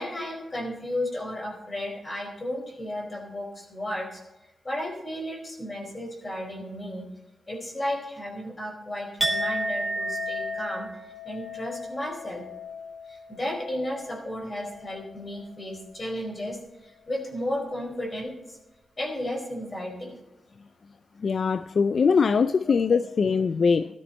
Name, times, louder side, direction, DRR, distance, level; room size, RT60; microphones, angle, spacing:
voice 1, 0.0-4.2 4.6-7.0 7.5-10.9 11.2-12.4 13.1-18.6 19.0-20.2 22.7-22.8, left 1 dB, 30° left, 4.3 m, -33 dB
Chink clink, 9.2-15.1 15.4-15.8, equal, 15° right, 2.7 m, -33 dB
voice 2, 21.2-23.9, left 5 dB, 55° left, 0.4 m, -22 dB
14.0 x 13.0 x 4.3 m
cardioid pair, 95°, 0 cm